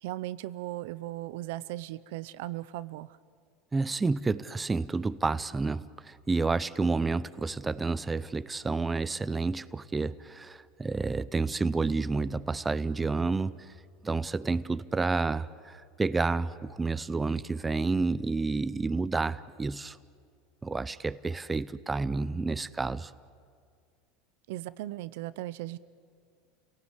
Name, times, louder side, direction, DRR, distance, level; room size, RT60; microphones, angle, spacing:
voice 1, 0.0-3.2 24.5-25.8, right 16 dB, 75° right, 17 dB, 0.6 m, -37 dB
voice 2, 3.7-13.7 14.0-20.0 20.6-23.1, right 3 dB, 15° right, 16 dB, 0.5 m, -30 dB
29.5 x 18.0 x 8.2 m, 2.2 s
supercardioid pair, 120°, 0 cm